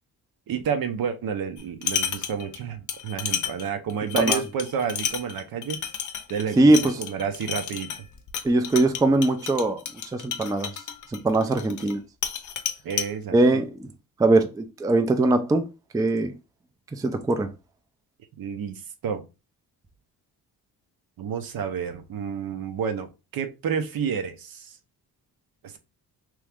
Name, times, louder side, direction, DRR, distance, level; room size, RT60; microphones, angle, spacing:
voice 1, 0.5-5.8 6.3-7.9 12.8-13.6 18.4-19.2 21.2-24.8 25.6-25.8, right 7 dB, 65° right, 0.7 m, -30 dB
sound 1, 1.6-2.6 2.9-12.0 12.2-13.1, left 8 dB, 50° left, 0.6 m, -31 dB
voice 2, 6.6-6.9 8.4-9.8 10.1-10.7 11.1-12.0 13.3-13.7 14.2-15.7 15.9-16.3 16.9-17.5, right 2 dB, 10° right, 0.3 m, -21 dB
3.1 x 2.4 x 3.4 m
cardioid pair, 100°, 38 cm